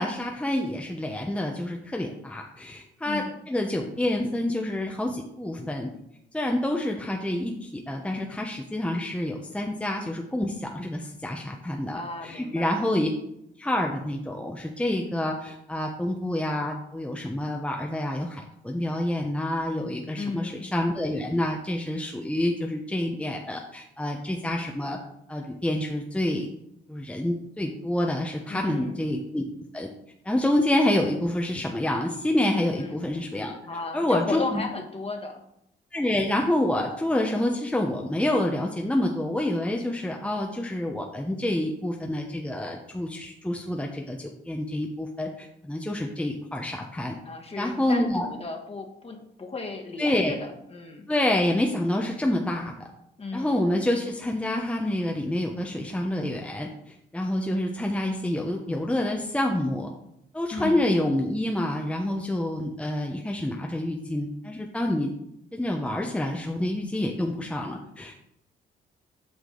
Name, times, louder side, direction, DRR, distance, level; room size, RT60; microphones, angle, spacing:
voice 1, 0.0-5.9 6.3-13.1 13.6-25.0 25.3-26.5 26.9-29.4 29.7-29.9 30.2-33.5 33.9-34.6 35.9-47.1 47.5-48.3 50.0-50.3 51.1-52.9 53.3-59.9 60.3-65.1 65.5-68.2, left 1 dB, 5° left, 1 dB, 0.8 m, -27 dB
voice 2, 3.0-3.4 11.7-12.8 20.1-20.6 28.5-29.0 32.7-33.0 33.7-35.4 47.2-51.1 53.2-53.7 60.5-60.8, left 3 dB, 30° left, 3 dB, 1.4 m, -35 dB
8.1 x 5.1 x 3.9 m, 0.77 s
cardioid pair, 90°, 20 cm